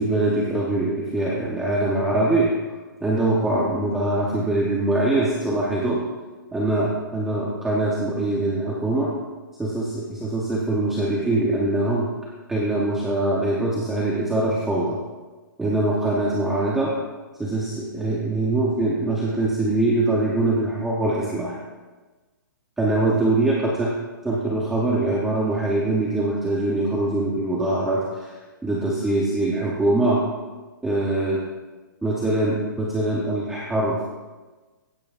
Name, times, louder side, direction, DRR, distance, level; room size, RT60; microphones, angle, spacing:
voice 1, 0.0-2.5 3.0-6.1 6.5-9.1 9.6-12.1 12.5-15.0 15.6-16.9 17.4-21.6 22.8-23.9 24.2-28.4 28.6-30.2 30.8-31.4 32.0-34.0, right 2 dB, 5° right, -4 dB, 0.6 m, -23 dB
15.5 x 8.7 x 2.4 m, 1.3 s
hypercardioid pair, 175°, 11 cm